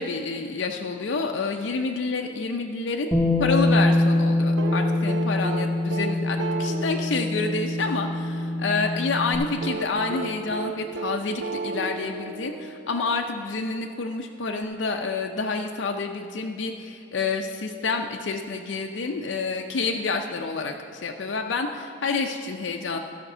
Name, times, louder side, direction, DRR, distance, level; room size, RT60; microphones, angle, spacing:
voice 1, 0.0-3.1 3.4-23.0, left 4 dB, 80° left, 3 dB, 0.5 m, -28 dB
Bass guitar, 3.1-9.4, left 2 dB, 5° left, 1.1 m, -24 dB
sound 1, 4.6-8.7 9.6-13.2 14.6-14.7, right 3 dB, 85° right, 0.7 m, -33 dB
12.5 x 5.1 x 6.7 m, 2.5 s
head